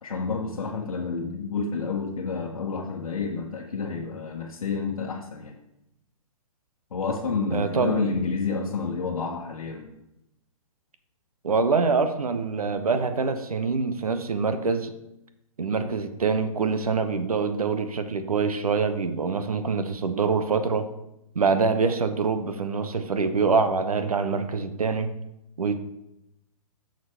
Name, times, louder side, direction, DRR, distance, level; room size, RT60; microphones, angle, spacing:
voice 1, 0.0-5.6 6.9-9.9, left 4 dB, 70° left, -1 dB, 1.1 m, -29 dB
voice 2, 7.5-8.0 11.4-14.9 15.6-20.9 21.3-25.1 25.6-25.8, right 4 dB, 80° right, 9 dB, 0.9 m, -25 dB
9.5 x 6.5 x 3.4 m, 0.85 s
figure-of-eight pair, 130°, 19 cm